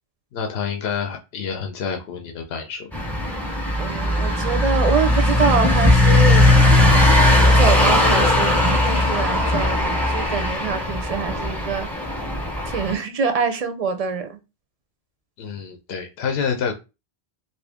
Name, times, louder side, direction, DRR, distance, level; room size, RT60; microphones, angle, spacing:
voice 1, 0.3-2.9 15.4-16.7, left 6 dB, 75° left, 3 dB, 0.8 m, -28 dB
sound 1, 2.9-12.9, left 1 dB, ahead, 0.7 m, -18 dB
voice 2, 3.8-6.5 7.6-11.9 12.6-14.4, right 5 dB, 50° right, 7 dB, 0.5 m, -25 dB
2.7 x 2.6 x 3.4 m, 0.27 s
omnidirectional pair, 1.1 m